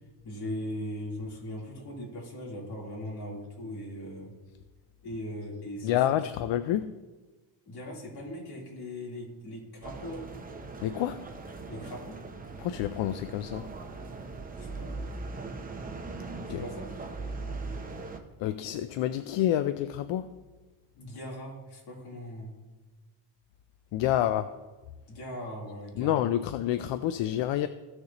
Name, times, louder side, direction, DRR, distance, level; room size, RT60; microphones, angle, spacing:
voice 1, 0.2-4.3 5.0-6.0 7.7-10.3 11.7-12.2 14.5-14.9 16.4-16.9 21.0-22.5 25.1-26.3, left 1 dB, 60° left, 3.4 m, -39 dB
voice 2, 5.8-6.9 10.8-11.3 12.6-13.7 16.5-16.6 18.4-20.3 23.9-24.6 25.9-27.7, left 12 dB, 80° left, 0.5 m, -28 dB
sound 1, 9.8-18.2, right 3 dB, 20° right, 0.6 m, -40 dB
15.5 x 6.7 x 2.9 m
cardioid pair, 165°, 44 cm